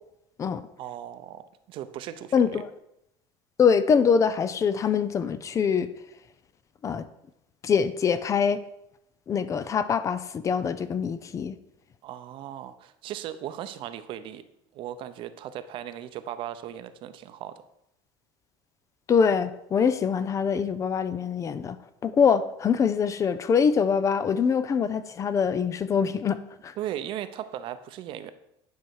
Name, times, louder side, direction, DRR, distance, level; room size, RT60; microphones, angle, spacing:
voice 1, 0.8-2.6 12.0-14.4 14.7-17.6 26.8-28.3, right 11 dB, 55° right, 11 dB, 0.7 m, -37 dB
voice 2, 2.3-2.7 3.6-5.9 6.8-7.1 7.6-8.6 9.3-11.6 19.1-21.8 22.0-26.4 26.6-26.7, left 6 dB, 30° left, 13 dB, 0.5 m, -24 dB
10.5 x 5.6 x 4.7 m, 0.82 s
supercardioid pair, 120°, 10 cm